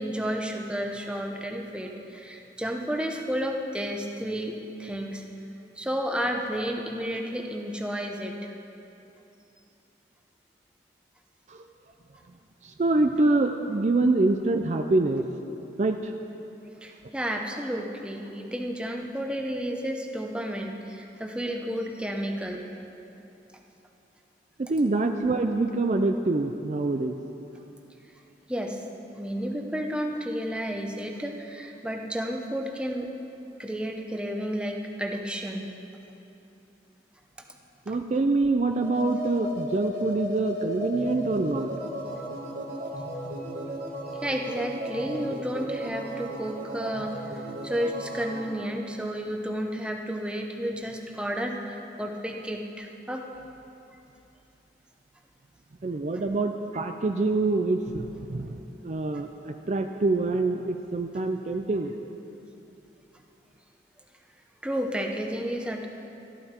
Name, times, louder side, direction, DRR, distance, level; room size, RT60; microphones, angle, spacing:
voice 1, 0.0-5.2 5.8-8.5 16.8-22.7 28.5-28.8 29.2-33.1 33.6-35.7 37.9-38.0 44.1-47.2 47.6-53.3 64.6-65.9, equal, 5° right, 2 dB, 0.8 m, -31 dB
voice 2, 12.6-15.2 15.8-16.1 24.6-27.2 37.9-41.7 55.8-61.9, right 2 dB, 40° right, 5 dB, 0.4 m, -25 dB
sound 1, 38.7-48.5, equal, 75° right, 2.6 m, -35 dB
13.5 x 12.0 x 4.4 m, 2.9 s
head